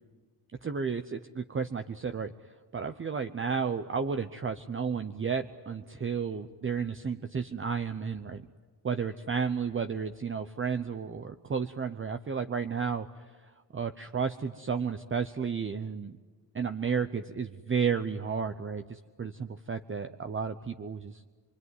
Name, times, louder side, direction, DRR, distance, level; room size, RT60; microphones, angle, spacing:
voice 1, 0.6-2.3 2.7-8.5 8.8-13.1 13.7-16.1 16.5-21.2, right 6 dB, 30° right, 8 dB, 0.8 m, -32 dB
25.0 x 24.5 x 9.5 m, 1.4 s
wide cardioid pair, 120°, 42 cm